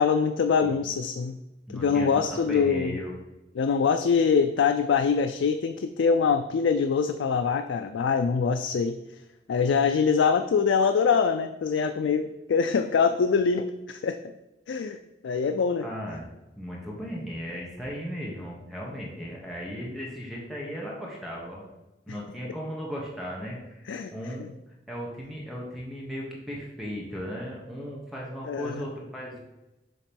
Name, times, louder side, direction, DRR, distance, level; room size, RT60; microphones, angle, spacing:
voice 1, 0.0-1.4 1.7-3.0 3.5-9.0 9.5-14.2 14.7-15.0 15.2-15.8 23.9-24.1 24.4-24.5 28.5-28.8, left 5 dB, 85° left, 7 dB, 0.3 m, -24 dB
voice 2, 1.7-3.2 15.8-16.3 16.6-21.6 22.1-24.5 24.9-29.4, equal, ahead, -4 dB, 1.1 m, -36 dB
7.0 x 3.0 x 5.2 m, 0.97 s
head